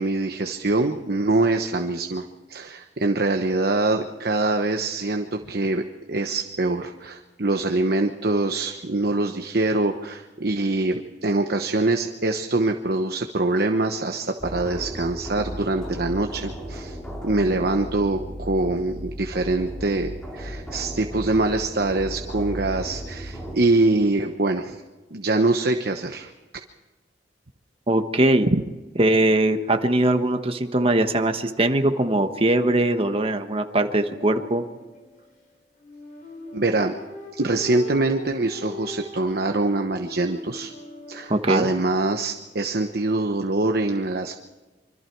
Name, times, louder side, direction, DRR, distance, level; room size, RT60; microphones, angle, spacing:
voice 1, 0.0-5.8 6.1-17.0 17.2-24.8 25.1-26.3 36.5-36.9 37.4-40.7 41.1-44.4, right 2 dB, 60° right, 4 dB, 1.1 m, -24 dB
sound 1, 14.4-23.5, equal, 5° left, 3.5 m, -35 dB
voice 2, 27.9-28.5 29.0-34.6 41.3-41.7, right 1 dB, 35° right, 7 dB, 1.4 m, -21 dB
sound 2, 34.0-41.3, left 2 dB, 50° left, 4.6 m, -40 dB
25.5 x 25.0 x 4.7 m, 1.2 s
head